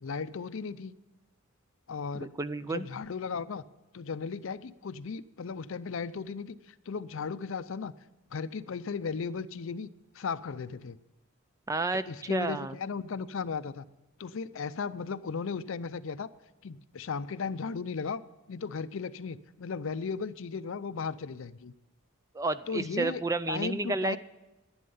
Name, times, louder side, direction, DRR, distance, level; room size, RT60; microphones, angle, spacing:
voice 1, 0.0-0.9 1.9-2.3 2.7-3.6 3.9-6.6 6.9-7.9 8.3-9.9 10.1-11.0 12.1-13.9 14.2-16.3 16.6-18.2 18.5-21.7 22.7-23.2 23.5-24.2, left 5 dB, 65° left, 15 dB, 0.5 m, -36 dB
voice 2, 2.1-2.8 11.7-12.8 22.3-24.2, right 2 dB, 15° right, 14 dB, 0.4 m, -31 dB
11.0 x 10.5 x 5.5 m, 1.0 s
head